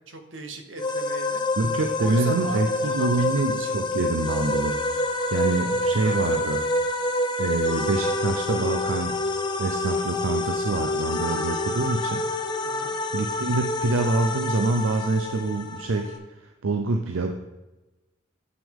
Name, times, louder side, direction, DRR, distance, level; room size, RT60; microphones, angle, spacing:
voice 1, 0.1-1.4 2.0-3.8 5.6-5.7 6.0-6.2 12.6-12.9, right 3 dB, 70° right, 5 dB, 1.0 m, -38 dB
sound 1, 0.8-16.2, left 2 dB, 20° left, 0.6 m, -27 dB
voice 2, 1.6-6.6 7.4-9.2 9.6-12.3 13.1-16.2 16.4-17.3, right 3 dB, 85° right, 5 dB, 0.6 m, -26 dB
8.2 x 6.0 x 3.6 m, 1.1 s
head